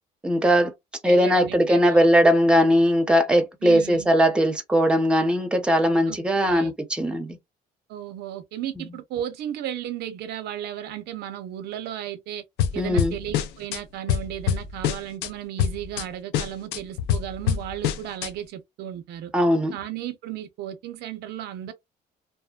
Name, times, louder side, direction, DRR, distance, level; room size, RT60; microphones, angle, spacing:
voice 1, 0.2-0.7 1.0-7.4 12.8-13.2 19.3-19.7, equal, 5° right, 0.7 m, -19 dB
voice 2, 1.0-2.0 3.6-4.1 6.1-6.2 6.4-6.8 7.9-12.4 12.7-19.3 19.7-21.7, right 11 dB, 75° right, 0.6 m, -34 dB
sound 1, 12.6-13.8 14.1-15.3 15.6-16.0 16.3-18.3, left 9 dB, 90° left, 0.5 m, -25 dB
2.7 x 2.1 x 2.3 m
cardioid pair, 110°, 17 cm